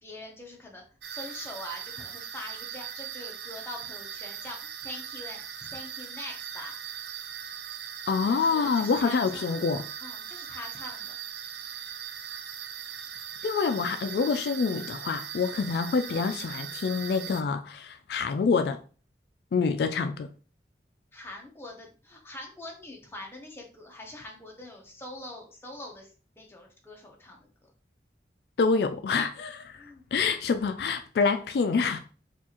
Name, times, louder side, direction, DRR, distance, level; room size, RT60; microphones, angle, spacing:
voice 1, 0.0-6.7 8.3-9.5 10.0-11.2 21.1-26.1 26.4-27.5 29.8-30.1, left 1 dB, 15° left, 0.8 m, -43 dB
sound 1, 1.0-17.4, right 8 dB, 75° right, 0.5 m, -40 dB
voice 2, 8.1-9.8 13.4-18.8 19.5-20.3 28.6-32.0, left 5 dB, 70° left, 0.3 m, -26 dB
4.4 x 2.5 x 2.9 m
head